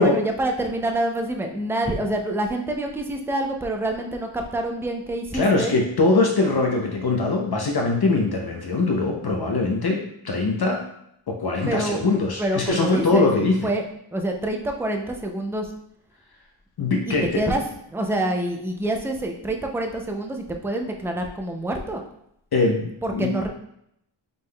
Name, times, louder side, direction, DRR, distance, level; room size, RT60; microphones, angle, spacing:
voice 1, 0.0-5.7 11.7-12.0 12.4-13.3 13.6-13.8 14.1-15.7 17.1-17.6 17.9-22.0 23.0-23.5, right 1 dB, 5° right, 3 dB, 0.4 m, -26 dB
voice 2, 5.3-10.0 10.2-10.8 11.3-13.6 16.8-17.4 22.5-23.3, left 3 dB, 50° left, 0 dB, 0.6 m, -22 dB
5.3 x 3.5 x 2.2 m, 0.75 s
wide cardioid pair, 90°, 50 cm